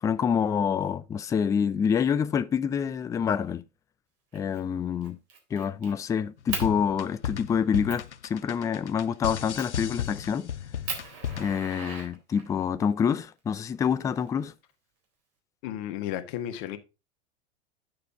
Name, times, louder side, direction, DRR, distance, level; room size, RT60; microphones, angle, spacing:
voice 1, 0.0-3.6 4.3-5.2 5.5-10.5 11.4-14.5, left 7 dB, 10° left, 0.3 m, -27 dB
Fire, 4.3-4.6 5.0-5.9 6.5-6.7 7.3-7.4 7.9-8.1 9.6-9.8 10.3-10.4 10.8-12.6 13.7-14.6, right 5 dB, 45° right, 3.8 m, -38 dB
sound 1, 6.4-11.7, left 9 dB, 85° left, 0.5 m, -34 dB
voice 2, 15.6-16.8, left 11 dB, 50° left, 1.4 m, -33 dB
9.0 x 6.7 x 3.8 m
figure-of-eight pair, 85°, 34 cm